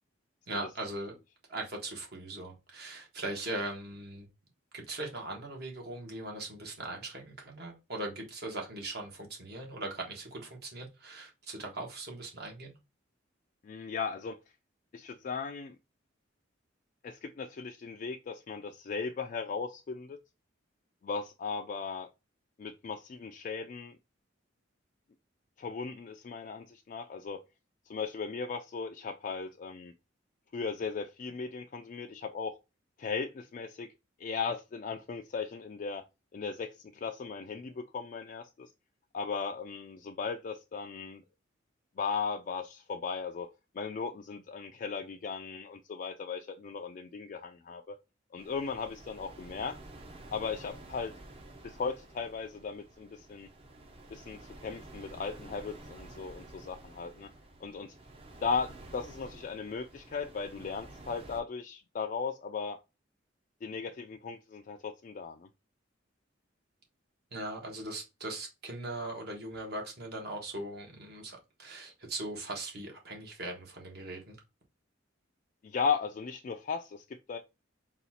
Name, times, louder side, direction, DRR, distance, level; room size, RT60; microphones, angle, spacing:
voice 1, 0.5-1.1 1.5-4.3 4.7-12.7 67.3-74.4, right 2 dB, 55° right, 1.3 m, -40 dB
voice 2, 13.6-14.4 14.9-15.8 17.0-20.2 21.0-22.1 22.6-24.0 25.6-27.4 27.9-29.9 30.5-32.5 33.0-33.9 34.2-36.0 36.3-38.7 39.1-41.2 42.0-48.0 48.3-49.8 50.3-51.1 51.6-53.5 54.1-57.3 57.6-57.9 58.4-62.8 63.6-65.5 75.6-77.4, left 5 dB, 45° left, 0.3 m, -37 dB
sound 1, 48.4-61.4, right 2 dB, 30° right, 0.6 m, -51 dB
4.0 x 2.4 x 4.1 m
head